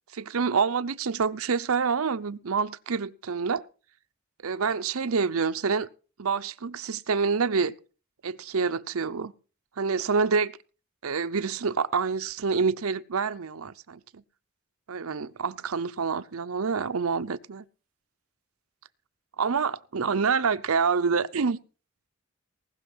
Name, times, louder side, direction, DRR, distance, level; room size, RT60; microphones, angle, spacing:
voice 1, 0.1-3.6 4.4-5.9 6.2-7.7 8.2-9.3 9.8-10.5 11.0-14.0 14.9-17.6 19.4-21.6, right 5 dB, 85° right, 0.7 m, -27 dB
19.0 x 6.4 x 6.1 m
head